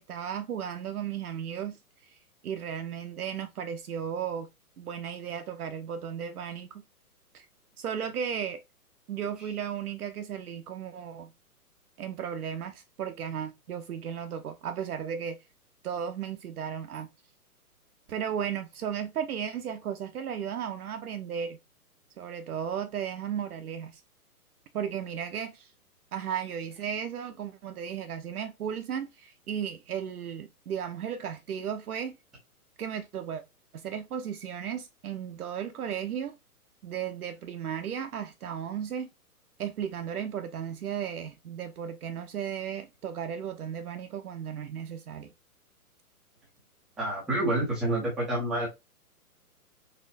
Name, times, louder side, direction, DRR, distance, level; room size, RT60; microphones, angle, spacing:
voice 1, 0.0-1.8 2.0-2.2 2.4-4.5 4.8-6.8 7.3-7.5 7.8-8.6 9.1-11.3 12.0-15.4 15.8-17.1 18.1-21.6 22.2-24.0 24.7-25.7 26.1-32.1 32.8-33.4 33.7-36.3 36.8-39.1 39.6-45.3, right 8 dB, 70° right, 0.7 m, -35 dB
voice 2, 47.0-48.7, right 1 dB, ahead, 0.4 m, -28 dB
4.2 x 3.1 x 2.6 m
hypercardioid pair, 135°, 46 cm